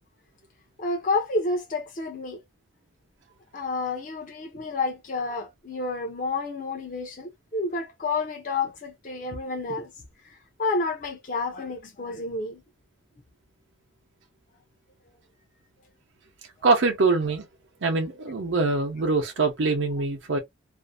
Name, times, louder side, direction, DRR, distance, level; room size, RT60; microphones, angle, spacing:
voice 1, 0.8-2.4 3.5-9.9 10.2-12.6 15.1-15.2, left 3 dB, 45° left, 0.5 m, -30 dB
voice 2, 16.6-17.4 17.8-20.4, right 3 dB, 80° right, 0.7 m, -23 dB
2.5 x 2.0 x 2.5 m
head